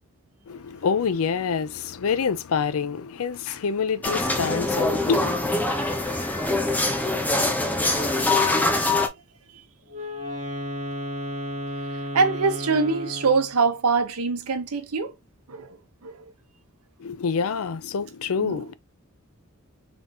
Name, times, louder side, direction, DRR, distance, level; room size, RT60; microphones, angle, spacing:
voice 1, 0.5-5.6 17.0-18.7, left 6 dB, 70° left, 0.5 m, -27 dB
sound 1, 4.0-9.1, left 2 dB, 5° left, 0.6 m, -23 dB
Wind instrument woodwind instrument, 9.9-13.6, left 1 dB, 35° right, 1.5 m, -33 dB
voice 2, 12.1-15.1 15.5-15.8 16.0-16.2 18.4-18.6, right 4 dB, 80° right, 0.8 m, -23 dB
3.8 x 3.6 x 2.5 m
head